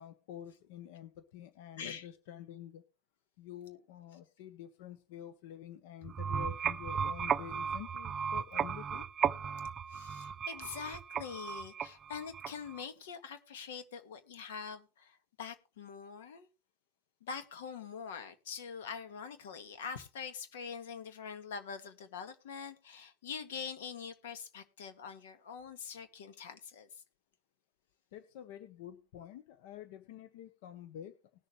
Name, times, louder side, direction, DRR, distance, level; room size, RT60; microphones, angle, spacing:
voice 1, 0.0-2.8 3.4-9.0 28.1-31.1, left 10 dB, 70° left, 1.1 m, -48 dB
voice 2, 1.8-2.1 9.9-16.5 17.2-26.9, left 6 dB, 90° left, 1.8 m, -44 dB
sound 1, 6.0-12.8, right 7 dB, 25° right, 0.5 m, -35 dB
19.5 x 6.8 x 3.3 m
supercardioid pair, 130°, 0 cm